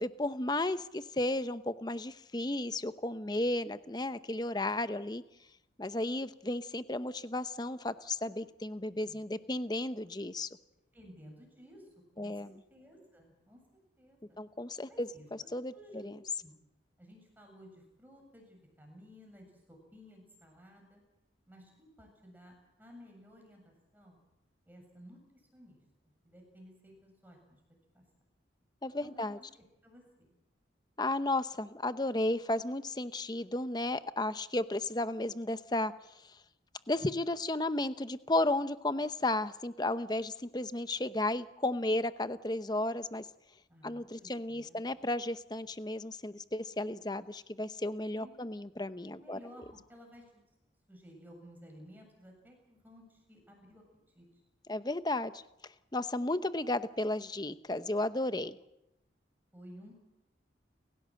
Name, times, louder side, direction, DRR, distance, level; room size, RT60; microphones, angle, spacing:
voice 1, 0.0-5.2 5.8-10.5 12.2-12.5 14.4-15.1 15.5-15.7 16.0-16.1 28.8-29.4 31.0-35.9 36.9-43.3 43.8-49.4 54.7-55.4 55.9-58.6, left 2 dB, 20° left, 12 dB, 0.8 m, -33 dB
voice 2, 10.9-11.9 12.1-13.6 14.0-14.4 14.9-16.0 16.4-16.5 17.0-21.0 21.5-24.2 24.7-25.8 26.2-27.6 27.9-28.0 29.0-29.3 29.5-30.3 43.7-44.9 48.2-48.5 49.1-50.4 50.9-53.8 54.1-54.3 59.5-59.9, equal, 10° right, 2 dB, 7.3 m, -55 dB
30.0 x 16.5 x 7.7 m, 0.91 s
head